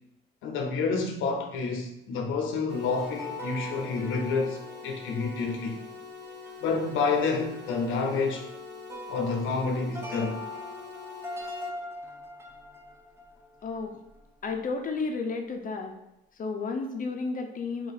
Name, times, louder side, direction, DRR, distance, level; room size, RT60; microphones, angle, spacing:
voice 1, 0.4-5.8 6.6-8.5 9.1-10.4, left 4 dB, 90° left, 0.7 m, -29 dB
sound 1, 2.7-11.7, left 5 dB, 60° right, 0.6 m, -45 dB
sound 2, 2.9-14.2 14.4-14.6, left 1 dB, 15° right, 0.7 m, -42 dB
voice 2, 13.6-14.0 14.4-15.9 16.3-17.9, left 4 dB, 45° left, 0.6 m, -32 dB
3.0 x 2.7 x 4.0 m
cardioid pair, 90°, 20 cm